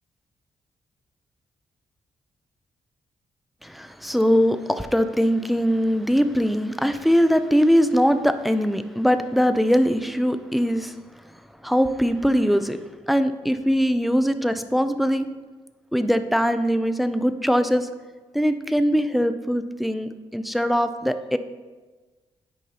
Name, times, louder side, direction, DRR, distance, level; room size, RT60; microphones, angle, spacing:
voice 1, 3.6-11.0 11.2-11.3 11.6-12.8 13.1-15.3 15.9-17.9 18.3-21.4, equal, ahead, 10 dB, 0.3 m, -21 dB
9.2 x 5.3 x 2.8 m, 1.3 s
cardioid pair, 105°, 11 cm